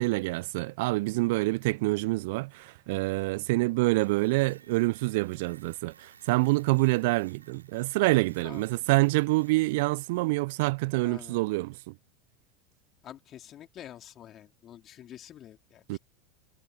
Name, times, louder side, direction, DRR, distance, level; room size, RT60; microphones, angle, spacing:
voice 1, 0.0-11.9 15.9-16.0, right 23 dB, 60° right, 0.8 m, -26 dB
sound 1, 4.0-10.3, right 7 dB, 75° right, 6.1 m, -57 dB
voice 2, 11.0-11.4 13.0-16.0, left 11 dB, 40° left, 3.5 m, -47 dB
figure-of-eight pair, 80°, 0 cm